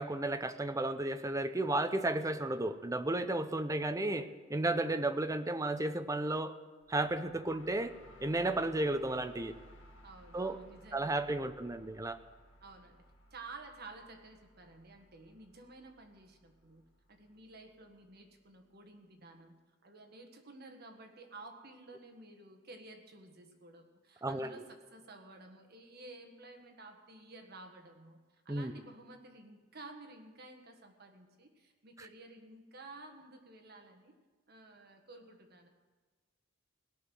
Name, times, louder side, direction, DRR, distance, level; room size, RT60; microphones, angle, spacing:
voice 1, 0.0-6.5 6.9-7.9 8.2-9.5 10.3-10.6 10.9-12.2 24.2-24.5 28.5-28.7, right 2 dB, 15° right, 10 dB, 0.6 m, -33 dB
sound 1, 6.8-18.5, equal, 70° left, 1.9 m, -60 dB
voice 2, 10.0-11.5 12.6-13.0 13.3-16.8 17.1-19.6 19.8-34.1 34.5-35.7, right 2 dB, 55° right, 4 dB, 1.6 m, -53 dB
17.5 x 6.3 x 9.3 m, 1.4 s
head